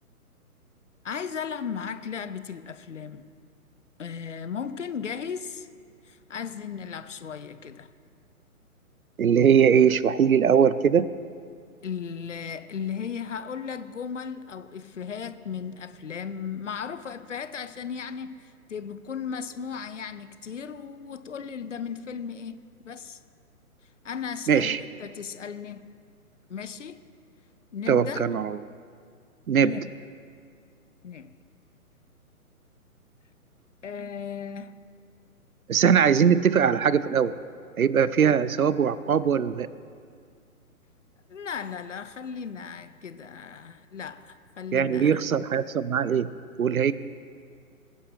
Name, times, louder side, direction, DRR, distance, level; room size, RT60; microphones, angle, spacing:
voice 1, 1.0-3.2 4.0-5.7 6.0-7.9 11.8-23.2 24.0-25.9 26.5-27.0 27.7-28.3 29.6-29.8 31.0-31.3 33.8-34.7 38.2-38.4 41.3-45.2, left 7 dB, 55° left, 0.6 m, -36 dB
voice 2, 9.2-11.1 24.5-24.8 27.9-28.6 29.5-29.7 35.7-37.3 37.8-39.7 44.7-46.3 46.6-46.9, right 7 dB, 70° right, 0.6 m, -21 dB
22.5 x 10.0 x 3.3 m
figure-of-eight pair, 130°, 44 cm